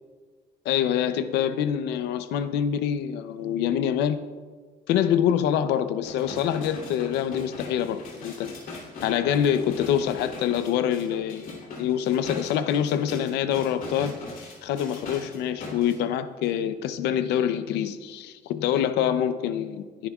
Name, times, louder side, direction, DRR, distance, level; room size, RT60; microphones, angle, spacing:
voice 1, 0.6-4.2 4.9-8.5 9.0-14.2 14.6-20.1, left 9 dB, 85° left, 11 dB, 0.7 m, -25 dB
sound 1, 6.0-16.0 16.4-16.5, left 3 dB, 55° left, 3.2 m, -40 dB
23.0 x 10.0 x 2.4 m, 1.5 s
cardioid pair, 110°, 17 cm